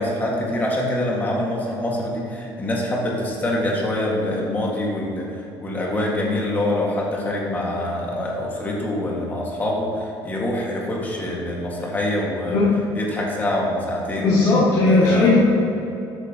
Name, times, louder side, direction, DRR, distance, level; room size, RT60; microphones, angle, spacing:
voice 1, 0.0-12.6 12.9-14.3 14.8-15.4, left 1 dB, 20° left, -3 dB, 1.7 m, -25 dB
voice 2, 14.2-15.4, left 3 dB, 45° left, -9 dB, 2.0 m, -16 dB
12.5 x 8.4 x 2.9 m, 2.9 s
cardioid pair, 165°, 9 cm